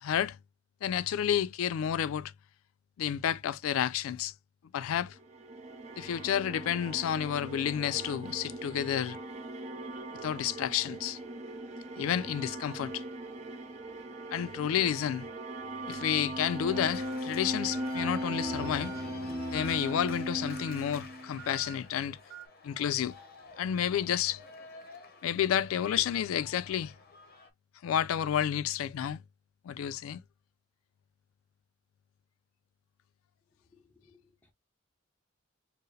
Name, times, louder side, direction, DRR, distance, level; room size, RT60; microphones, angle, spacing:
voice 1, 0.0-0.4 0.8-2.3 3.0-4.3 4.7-5.2 6.0-9.2 10.2-11.2 12.0-13.0 14.3-15.3 15.9-19.0 19.5-22.2 22.6-23.1 23.6-24.4 25.2-26.9 27.8-29.2 29.6-30.2, left 9 dB, 90° left, 0.3 m, -30 dB
sound 1, 5.2-21.5, right 1 dB, 35° right, 0.5 m, -39 dB
sound 2, 16.4-22.5, right 12 dB, 85° right, 0.4 m, -50 dB
Organ, 16.7-27.5, left 3 dB, 45° left, 0.7 m, -48 dB
voice 2, 33.7-34.5, left 4 dB, 10° left, 0.8 m, -64 dB
4.5 x 2.0 x 3.2 m
head